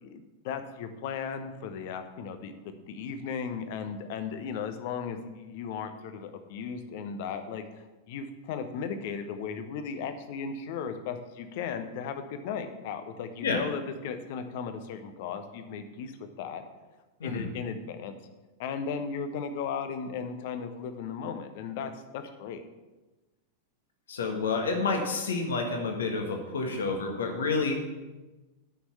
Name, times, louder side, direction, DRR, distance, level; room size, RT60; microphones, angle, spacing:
voice 1, 0.0-16.1 16.4-16.6 17.2-18.2 18.6-22.6, left 6 dB, 50° left, 8 dB, 1.1 m, -36 dB
voice 2, 24.1-27.8, left 4 dB, 65° left, 3 dB, 1.7 m, -29 dB
9.8 x 6.4 x 7.1 m, 1.1 s
figure-of-eight pair, 90°, 0 cm